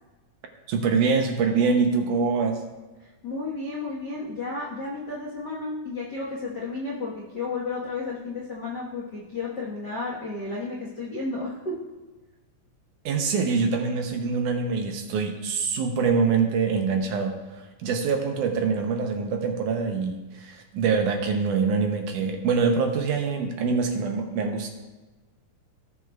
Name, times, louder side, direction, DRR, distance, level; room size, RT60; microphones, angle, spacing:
voice 1, 0.7-2.6 13.1-24.7, right 5 dB, 75° right, 3 dB, 2.1 m, -24 dB
voice 2, 3.0-11.7, left 3 dB, 65° left, -5 dB, 1.0 m, -32 dB
18.0 x 7.0 x 2.3 m, 1.2 s
omnidirectional pair, 4.0 m